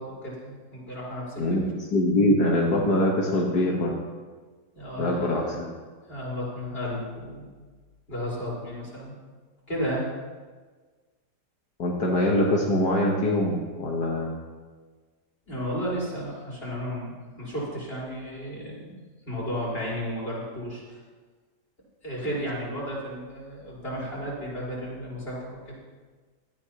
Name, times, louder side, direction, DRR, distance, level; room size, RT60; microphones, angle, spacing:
voice 1, 0.0-1.4 4.7-5.4 6.1-7.5 8.1-9.1 9.7-10.0 15.4-19.0 19.2-21.0 22.0-25.7, equal, 35° left, -6 dB, 4.7 m, -33 dB
voice 2, 1.4-4.0 5.0-5.7 11.8-14.3, left 1 dB, 80° left, -2 dB, 1.9 m, -23 dB
18.0 x 12.5 x 2.9 m, 1.4 s
omnidirectional pair, 1.7 m